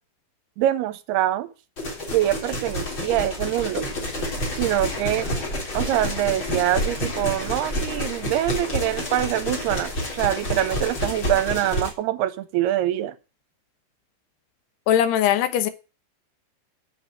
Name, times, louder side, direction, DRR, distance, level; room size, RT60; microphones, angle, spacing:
voice 1, 0.6-1.5 2.1-3.8 4.5-5.3 5.7-13.2, right 13 dB, 75° right, 2.4 m, -24 dB
sound 1, 1.8-11.9, left 1 dB, 25° left, 3.3 m, -29 dB
voice 2, 14.9-15.7, left 10 dB, 75° left, 2.8 m, -20 dB
9.2 x 7.2 x 8.8 m
omnidirectional pair, 5.3 m